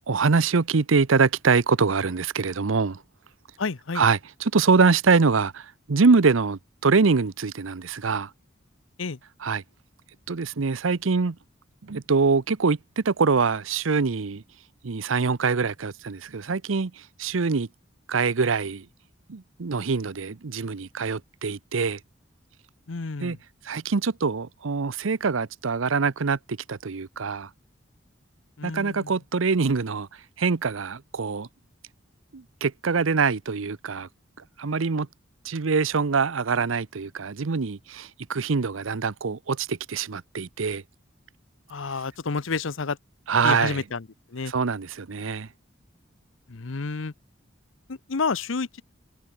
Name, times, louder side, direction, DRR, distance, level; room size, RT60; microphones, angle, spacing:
voice 1, 0.1-3.0 3.9-8.3 9.4-9.6 10.3-11.4 11.8-14.4 14.8-17.7 18.1-18.9 19.3-22.0 23.2-23.4 23.6-27.5 28.6-30.1 30.4-31.5 32.3-34.1 34.6-35.1 35.4-40.8 43.3-43.8 44.5-45.5, right 4 dB, 85° right, 0.7 m, -24 dB
voice 2, 3.6-4.0 9.0-9.2 22.9-23.4 28.6-29.1 41.7-43.0 43.4-44.5 46.5-47.1 47.9-48.8, left 4 dB, 85° left, 0.9 m, -30 dB
head